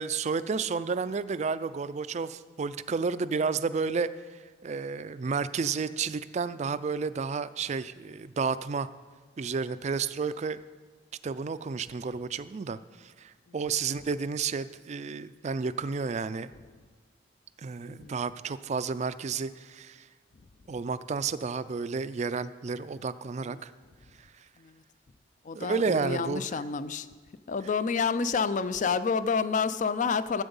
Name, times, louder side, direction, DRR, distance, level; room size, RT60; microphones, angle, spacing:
voice 1, 0.0-8.9 9.4-10.6 11.2-16.5 17.6-20.1 20.7-23.7 25.5-26.6, right 5 dB, 35° right, 14 dB, 0.4 m, -31 dB
voice 2, 17.9-18.2 23.4-23.6 24.6-24.8 25.4-27.1 27.5-30.4, left 5 dB, 40° left, 14 dB, 0.4 m, -29 dB
14.0 x 7.8 x 5.4 m, 1.5 s
head